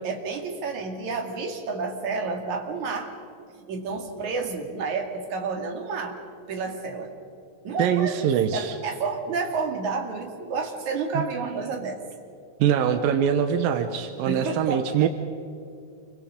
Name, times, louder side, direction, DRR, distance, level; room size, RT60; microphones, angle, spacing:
voice 1, 0.0-3.1 3.7-6.2 6.5-7.1 7.6-8.2 8.5-12.0 14.3-14.9, right 4 dB, 60° right, 2 dB, 3.6 m, -30 dB
voice 2, 7.8-8.8 11.1-11.8 12.6-15.1, right 8 dB, 85° right, 7 dB, 2.7 m, -24 dB
28.5 x 24.0 x 5.2 m, 2.5 s
omnidirectional pair, 3.9 m